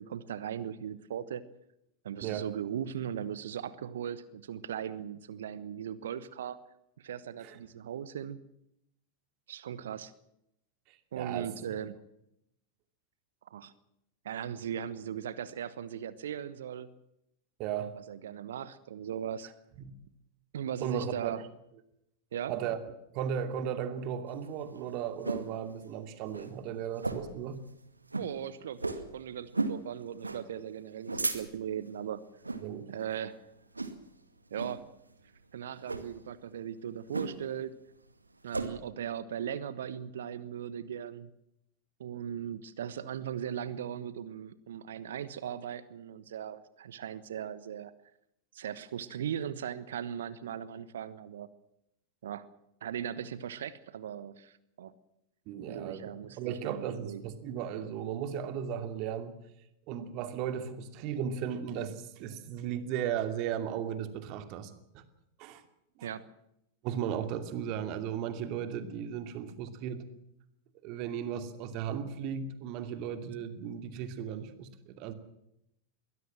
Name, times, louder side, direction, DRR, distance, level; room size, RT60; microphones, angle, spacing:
voice 1, 0.0-1.4 2.0-6.6 7.0-8.4 9.5-10.1 11.1-12.0 13.5-13.7 14.2-16.9 17.9-19.5 20.5-21.4 22.3-22.5 28.1-28.8 29.1-32.2 32.9-33.4 34.5-34.8 35.5-37.8 38.4-41.3 42.0-47.9 48.5-51.5 52.2-52.5 52.8-54.9 55.7-57.2 66.0-66.2, right 9 dB, 60° right, 16 dB, 1.2 m, -38 dB
voice 2, 10.9-11.5 17.6-17.9 19.8-19.9 20.8-21.4 22.5-22.8 23.1-27.6 32.6-32.9 55.5-56.1 56.4-59.4 59.9-65.0 65.4-65.6 66.0-66.1 66.8-70.0 70.8-75.1, right 8 dB, 40° right, 10 dB, 2.6 m, -36 dB
sound 1, 24.3-25.5 25.9-26.0 26.3-26.5 27.0-27.4 27.7-27.8 28.1-28.3 28.8-29.1 29.5-29.8 30.2-30.4 30.9-31.7 32.4-32.7 33.1-33.3 33.7-34.2 34.6-34.8 35.8-36.1 37.1-37.6 37.9-38.7, right 3 dB, 80° right, 2.1 m, -34 dB
22.5 x 17.5 x 7.5 m, 0.80 s
figure-of-eight pair, 90°, 0 cm